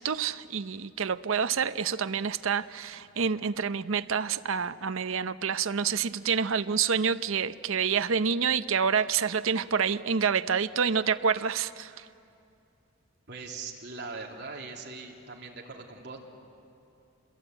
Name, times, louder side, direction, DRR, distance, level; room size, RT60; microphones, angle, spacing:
voice 1, 0.0-12.0, right 6 dB, 70° right, 12 dB, 0.6 m, -28 dB
voice 2, 13.3-16.2, right 4 dB, 50° right, 0 dB, 3.1 m, -41 dB
28.0 x 22.5 x 9.1 m, 2.6 s
head